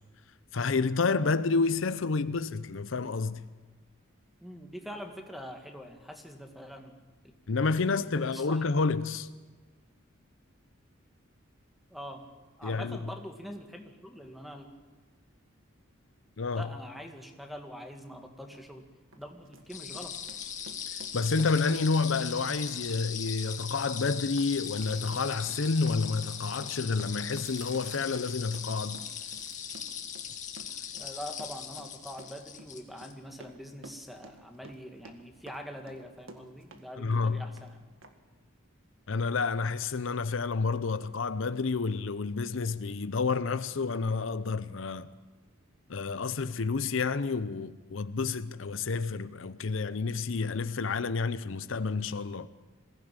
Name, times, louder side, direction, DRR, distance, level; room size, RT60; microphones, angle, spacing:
voice 1, 0.5-3.5 7.5-9.3 12.6-13.0 16.4-16.7 20.9-29.0 37.0-37.4 39.1-45.1 45.9-52.5, left 4 dB, 70° left, 0.7 m, -29 dB
voice 2, 4.4-7.0 7.9-8.6 11.9-12.2 12.6-14.7 16.6-18.8 19.2-20.1 30.9-37.9, equal, ahead, 1.9 m, -44 dB
Run, 18.5-18.7 19.1-36.8 37.1-37.7 38.0-38.1, right 2 dB, 80° right, 1.8 m, -52 dB
sound 1, 19.7-33.1, left 8 dB, 35° left, 2.0 m, -39 dB
sound 2, 21.2-25.9 26.2-30.0, right 3 dB, 35° right, 3.6 m, -56 dB
21.0 x 16.0 x 8.9 m
head